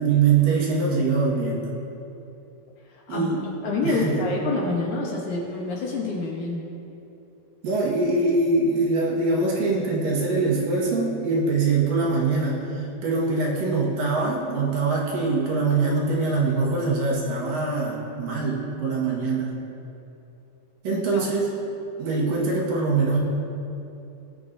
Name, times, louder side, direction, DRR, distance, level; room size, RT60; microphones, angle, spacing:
voice 1, 0.0-1.8 3.1-3.5 3.8-4.3 7.6-19.6 20.8-21.5 22.0-23.2, right 3 dB, 70° right, -4 dB, 3.1 m, -23 dB
voice 2, 2.9-6.6 20.9-21.3, left 3 dB, 65° left, -2 dB, 2.2 m, -28 dB
18.5 x 8.3 x 2.6 m, 2.8 s
omnidirectional pair, 4.3 m